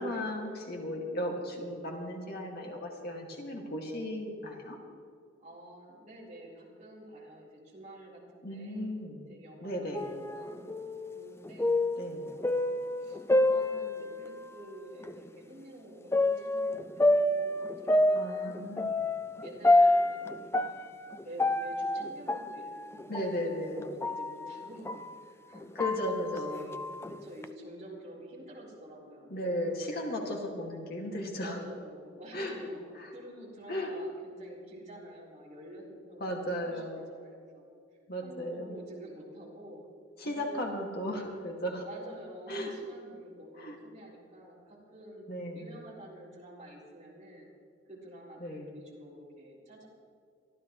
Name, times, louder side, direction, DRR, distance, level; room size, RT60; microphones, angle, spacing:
voice 1, 0.0-4.8 8.4-9.3 9.6-10.2 12.0-12.3 18.1-19.0 23.1-23.9 25.7-26.7 29.3-31.6 32.3-32.5 33.0-33.1 33.7-33.9 36.2-37.0 38.1-38.7 40.2-41.9 42.5-42.7 43.6-43.8 45.3-45.8 48.4-48.7, left 1 dB, 50° left, 0 dB, 2.2 m, -36 dB
voice 2, 5.4-8.9 9.3-10.7 11.1-11.7 12.3-18.7 19.4-20.7 21.2-25.6 26.1-29.7 30.2-30.7 31.4-32.8 33.1-37.7 38.2-39.8 40.2-41.1 41.8-45.3 45.5-47.5 47.9-49.9, right 1 dB, 35° right, -5 dB, 4.0 m, -49 dB
sound 1, 9.9-14.6 15.0-15.1 16.1-25.2 25.6-27.4, left 1 dB, 15° left, 0.4 m, -28 dB
24.0 x 14.0 x 3.2 m, 2.3 s
head